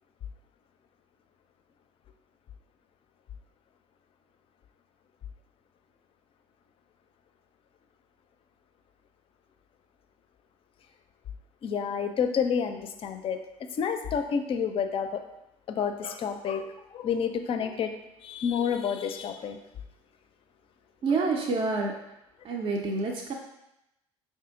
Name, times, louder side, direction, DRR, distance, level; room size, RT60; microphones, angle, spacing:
voice 1, 11.6-13.4 13.8-15.2 15.7-19.6, left 7 dB, 35° left, 7 dB, 0.4 m, -29 dB
voice 2, 21.0-22.0 22.4-23.3, right 3 dB, 35° right, 0 dB, 0.5 m, -28 dB
4.9 x 2.7 x 3.5 m, 0.89 s
figure-of-eight pair, 60°, 16 cm